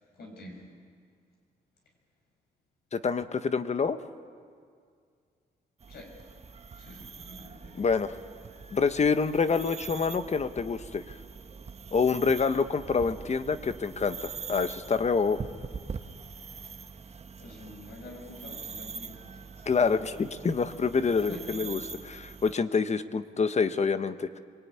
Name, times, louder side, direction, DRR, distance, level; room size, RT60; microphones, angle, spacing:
voice 1, 0.1-0.7 5.9-6.1 6.7-7.9 17.4-19.7 21.1-21.8, left 1 dB, 75° left, 1 dB, 6.7 m, -46 dB
voice 2, 2.9-4.0 7.8-8.1 8.7-11.0 11.9-15.4 19.7-21.8 22.0-24.4, left 5 dB, 40° left, 11 dB, 1.1 m, -27 dB
sound 1, 5.8-22.5, right 5 dB, 40° right, 1.1 m, -43 dB
25.5 x 19.5 x 9.6 m, 2.1 s
cardioid pair, 85°, 17 cm